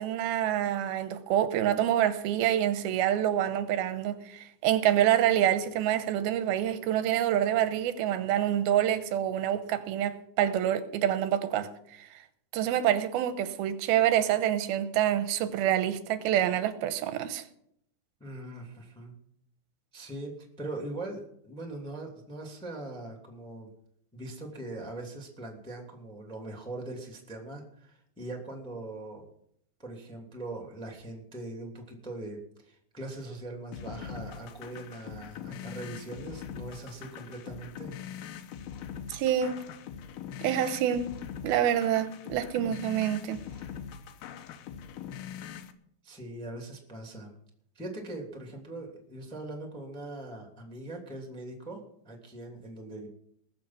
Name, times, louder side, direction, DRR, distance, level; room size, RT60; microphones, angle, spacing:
voice 1, 0.0-11.7 12.0-12.1 12.5-17.4 39.1-39.6 40.4-41.1 41.4-43.4, right 11 dB, 90° right, 2.9 m, -27 dB
voice 2, 18.2-19.1 19.9-23.7 24.1-29.2 29.8-32.4 32.6-37.9 46.0-47.3 47.7-53.1, right 2 dB, ahead, 2.1 m, -41 dB
sound 1, 33.7-45.7, left 8 dB, 85° left, 2.8 m, -42 dB
20.5 x 7.5 x 6.0 m
omnidirectional pair, 4.3 m